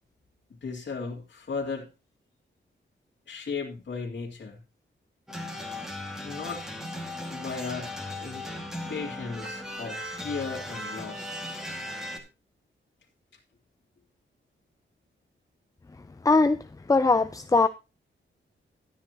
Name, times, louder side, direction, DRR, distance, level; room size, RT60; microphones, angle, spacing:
voice 1, 0.6-1.9 3.3-4.6 6.2-6.7 7.3-8.4 8.9-11.4, left 4 dB, 60° left, 2.4 m, -36 dB
sound 1, 5.3-12.2, left 1 dB, ahead, 2.1 m, -37 dB
voice 2, 16.3-16.6 16.9-17.7, left 3 dB, 15° left, 0.4 m, -20 dB
12.0 x 9.5 x 3.0 m
wide cardioid pair, 100°, 21 cm